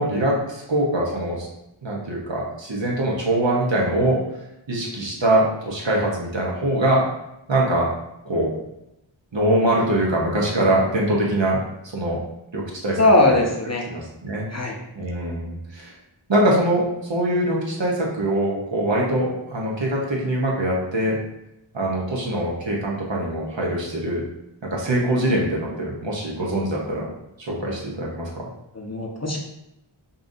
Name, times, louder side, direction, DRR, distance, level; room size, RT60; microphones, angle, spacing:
voice 1, 0.0-1.5 1.8-4.2 4.7-7.0 7.5-7.9 8.2-8.5 9.3-11.6 11.9-12.2 12.5-13.4 13.9-14.5 14.9-15.9 16.3-21.2 21.7-24.3 24.7-27.1 27.4-28.5, right 1 dB, 65° right, -3 dB, 1.1 m, -23 dB
voice 2, 13.0-13.8 14.5-14.7 28.8-29.4, left 2 dB, 35° left, -1 dB, 0.7 m, -19 dB
5.4 x 2.6 x 2.7 m, 0.86 s
wide cardioid pair, 50°, 48 cm